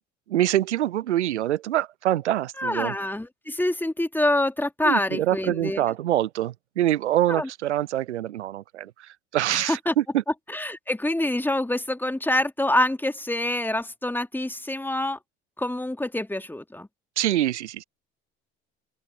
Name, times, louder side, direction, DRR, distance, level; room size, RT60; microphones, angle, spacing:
voice 1, 0.3-2.9 4.8-8.9 9.3-10.2 17.2-17.8, right 13 dB, 80° right, 0.6 m, -25 dB
voice 2, 2.6-5.8 7.3-7.5 9.5-9.9 10.5-15.2 15.6-16.9, left 1 dB, 5° left, 2.7 m, -26 dB
open air
figure-of-eight pair, 60°, 35 cm